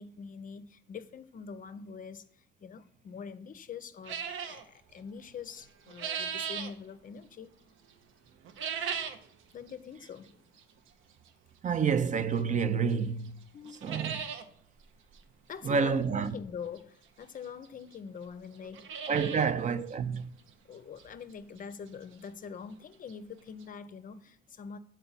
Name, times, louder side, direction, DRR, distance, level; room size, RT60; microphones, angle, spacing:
voice 1, 0.0-7.6 9.5-10.4 13.5-14.0 15.5-19.6 20.0-20.3 20.6-24.8, left 6 dB, 45° left, 0.5 m, -44 dB
sound 1, 4.1-4.6 5.6-6.7 8.4-9.3 9.7-9.8 10.6-10.7 12.4-12.5 12.9-13.0 13.3-13.4 13.6-14.4 14.8-14.9 15.1-15.2 16.8-16.9 17.6-17.7 17.9-18.0 18.5-19.5 19.9-20.0 20.5-20.6 21.0-21.1 22.8-22.9 23.1-23.2 23.6-23.7, right 7 dB, 80° right, 0.6 m, -37 dB
voice 2, 11.6-13.4 13.8-14.2 15.6-16.3 19.1-20.2, right 6 dB, 40° right, 0.4 m, -28 dB
6.9 x 4.4 x 3.9 m
cardioid pair, 90°, 20 cm